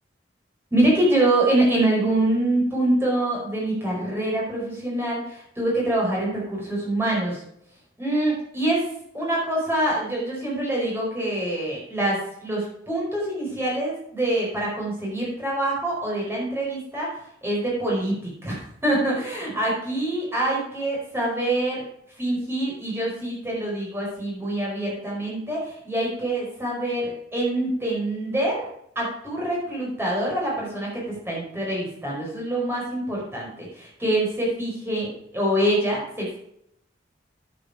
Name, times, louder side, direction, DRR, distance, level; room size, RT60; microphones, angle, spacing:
voice 1, 0.7-7.4 8.0-8.8 9.1-21.8 22.2-28.7 28.9-36.4, right 1 dB, 15° right, -4 dB, 4.9 m, -25 dB
11.0 x 7.9 x 5.0 m, 0.70 s
head